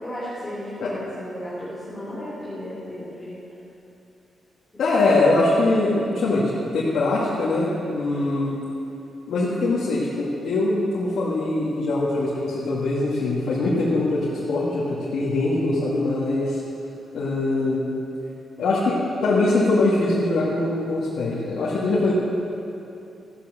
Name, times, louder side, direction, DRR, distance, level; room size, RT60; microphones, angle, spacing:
voice 1, 0.0-3.4, left 1 dB, 10° left, -10 dB, 3.6 m, -34 dB
voice 2, 4.8-8.6 9.3-16.6 17.1-17.9 18.6-22.1, left 2 dB, 75° left, -8 dB, 2.3 m, -22 dB
14.0 x 10.0 x 6.9 m, 2.8 s
cardioid pair, 120°, 0 cm